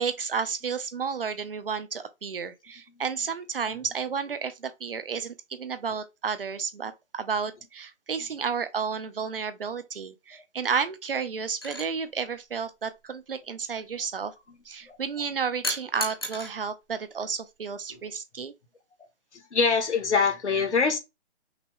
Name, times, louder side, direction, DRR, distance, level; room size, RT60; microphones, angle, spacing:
voice 1, 0.0-14.3 14.7-18.5, right 6 dB, 55° right, 0.7 m, -32 dB
sound 1, 11.6-11.9 15.6-16.5 17.9-18.1, left 1 dB, 20° left, 0.6 m, -33 dB
voice 2, 19.3-21.0, left 5 dB, 80° left, 1.6 m, -24 dB
5.8 x 2.3 x 3.5 m
hypercardioid pair, 175°, 34 cm